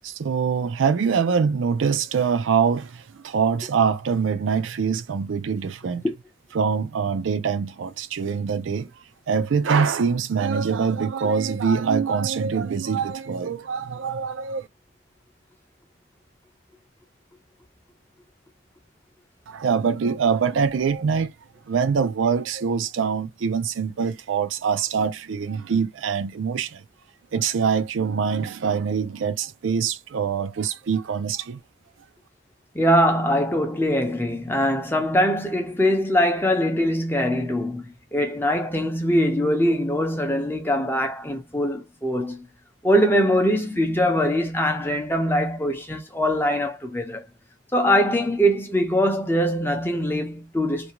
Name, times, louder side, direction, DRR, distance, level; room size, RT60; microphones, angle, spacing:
voice 1, 0.0-2.9 3.2-6.0 6.5-8.9 9.3-14.7 19.5-21.3 21.7-26.8 27.3-31.6, right 6 dB, 80° right, 0.4 m, -24 dB
voice 2, 32.7-42.5 42.8-47.2 47.7-50.9, equal, 10° left, 0.5 m, -22 dB
2.5 x 2.2 x 2.8 m
head